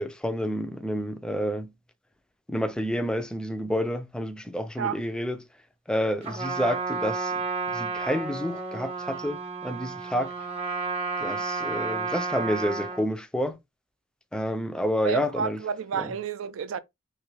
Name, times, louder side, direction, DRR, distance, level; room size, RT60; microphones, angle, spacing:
voice 1, 0.0-1.7 2.5-5.4 5.9-10.3 11.2-13.6 14.3-15.6 15.9-16.1, equal, 5° left, 0.3 m, -29 dB
Trumpet, 6.2-13.1, right 4 dB, 30° right, 0.7 m, -32 dB
voice 2, 15.0-16.8, right 6 dB, 90° right, 0.4 m, -30 dB
3.3 x 2.3 x 3.0 m
head